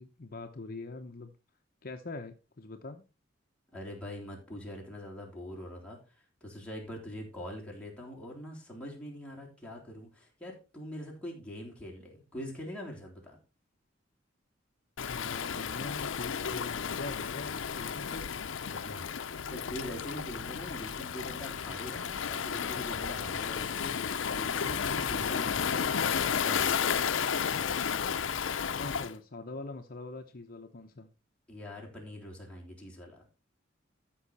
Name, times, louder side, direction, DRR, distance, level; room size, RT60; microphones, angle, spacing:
voice 1, 0.0-1.4 1.8-3.0 15.0-18.3 28.8-31.1, left 3 dB, 50° left, 0.8 m, -43 dB
voice 2, 3.7-6.0 6.4-13.4 18.7-26.0 26.4-26.9 31.5-33.3, equal, 5° left, 3.4 m, -43 dB
Waves surf, 15.0-29.1, left 7 dB, 90° left, 0.6 m, -32 dB
13.5 x 5.5 x 4.2 m
head